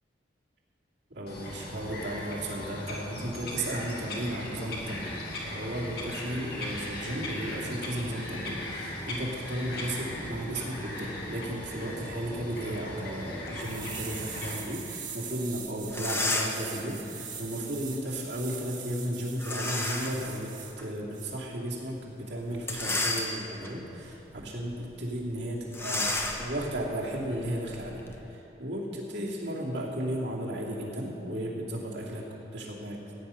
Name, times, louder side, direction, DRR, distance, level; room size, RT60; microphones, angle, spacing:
voice 1, 1.1-5.2 5.4-20.5 20.8-32.2 32.5-33.0, right 1 dB, 70° right, -5 dB, 2.7 m, -34 dB
Bird vocalization bird call bird song, 1.3-14.5, left 1 dB, 55° left, 2.3 m, -38 dB
sound 1, 13.6-20.7 21.1-21.3, right 7 dB, 45° right, 1.6 m, -42 dB
sound 2, 15.5-15.6 15.9-16.7 19.4-20.3 20.8-20.9 22.5-23.7 24.2-24.5 24.7-24.8 25.7-28.2, left 2 dB, 15° left, 0.9 m, -32 dB
16.0 x 9.5 x 5.8 m, 2.9 s
head